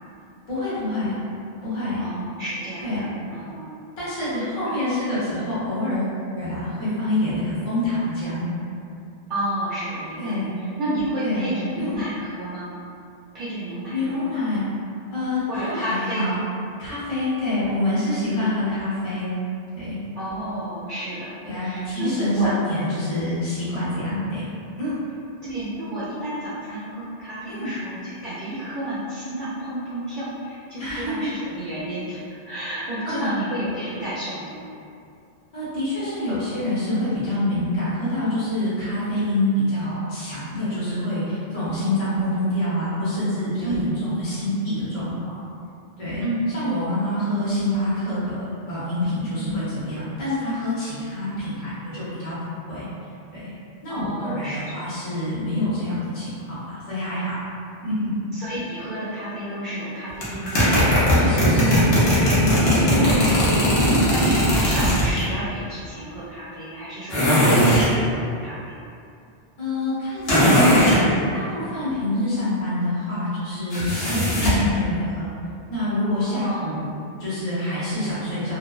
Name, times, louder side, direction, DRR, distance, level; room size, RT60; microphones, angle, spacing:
voice 1, 0.5-1.1 1.6-2.0 2.8-3.0 4.0-8.4 10.2-10.5 11.2-12.0 13.9-14.7 15.1-16.3 16.8-19.3 19.7-20.0 21.4-24.5 24.8-24.9 27.5-27.7 30.8-31.3 33.0-33.3 35.5-45.4 46.0-46.2 46.5-52.8 53.3-53.5 53.8-57.4 57.8-58.1 61.2-61.9 62.6-63.5 63.9-64.1 69.6-75.3 75.7-78.6, left 1 dB, 40° left, -12 dB, 0.8 m, -26 dB
voice 2, 2.0-3.7 4.7-4.8 9.3-12.7 13.3-14.3 15.5-16.3 20.2-22.6 25.4-32.2 32.5-34.6 43.6-43.9 46.2-46.5 49.4-49.6 53.9-54.8 58.3-60.7 61.2-61.9 62.9-63.3 63.9-68.6 76.3-76.6, right 1 dB, 60° right, -11 dB, 0.6 m, -31 dB
sound 1, 60.2-65.3 67.1-67.9 70.3-71.0 73.7-74.7, equal, 75° left, 0.9 m, -18 dB
2.7 x 2.0 x 2.3 m, 2.5 s
omnidirectional pair, 1.0 m